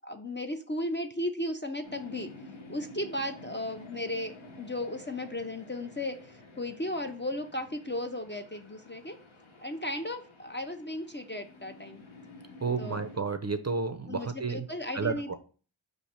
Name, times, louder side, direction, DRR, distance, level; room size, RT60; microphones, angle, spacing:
voice 1, 0.0-2.3 2.7-6.2 6.6-9.2 9.6-12.0 12.8-13.0 14.1-15.4, left 1 dB, 25° left, 6 dB, 0.4 m, -35 dB
sound 1, 1.8-13.2, left 2 dB, 70° left, 1.0 m, -51 dB
voice 2, 12.6-14.7 14.9-15.4, right 4 dB, 35° right, 9 dB, 0.5 m, -31 dB
4.8 x 2.6 x 4.2 m, 0.39 s
wide cardioid pair, 40°, 50 cm